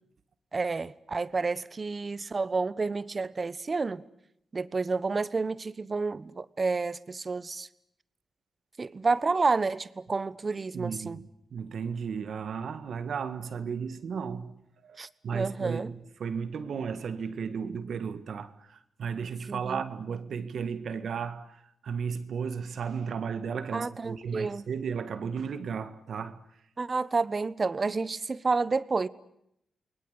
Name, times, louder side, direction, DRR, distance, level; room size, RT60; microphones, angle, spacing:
voice 1, 0.5-4.0 4.5-7.7 8.8-11.2 15.0-15.9 19.5-19.8 23.7-24.6 26.8-29.1, right 4 dB, 40° right, 1.2 m, -30 dB
voice 2, 10.7-26.4, right 6 dB, 70° right, 1.9 m, -34 dB
29.5 x 21.5 x 8.2 m
cardioid pair, 65°, 0 cm